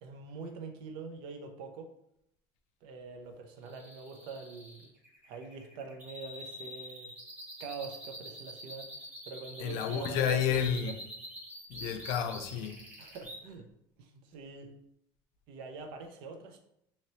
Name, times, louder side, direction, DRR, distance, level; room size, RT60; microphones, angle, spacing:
voice 1, 0.0-1.9 2.8-4.9 5.3-7.1 7.6-8.9 9.3-11.0 13.0-13.7 14.0-14.7 15.5-16.6, right 4 dB, 65° right, 0.5 m, -44 dB
sound 1, 3.6-13.4, equal, 15° right, 0.8 m, -46 dB
voice 2, 9.6-10.9 11.7-12.8, left 8 dB, 80° left, 0.4 m, -30 dB
2.9 x 2.8 x 3.0 m
cardioid pair, 170°, 9 cm